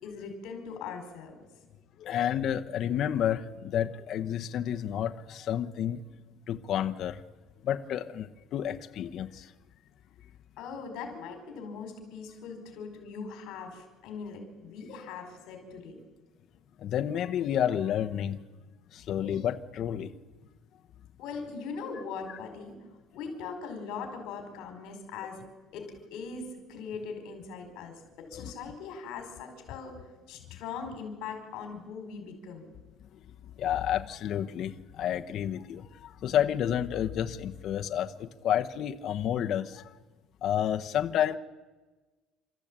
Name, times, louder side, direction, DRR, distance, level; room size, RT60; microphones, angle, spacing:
voice 1, 0.0-1.4 10.6-16.0 21.2-22.8 23.1-25.4 25.7-32.7, left 5 dB, 65° left, 5 dB, 4.9 m, -40 dB
voice 2, 2.0-6.0 6.5-7.2 7.6-9.5 16.8-18.4 18.9-20.1 22.3-22.4 28.3-28.5 33.6-40.0 40.4-41.4, left 10 dB, 45° left, 6 dB, 0.9 m, -30 dB
29.0 x 13.5 x 8.8 m, 1.3 s
cardioid pair, 175°, 0 cm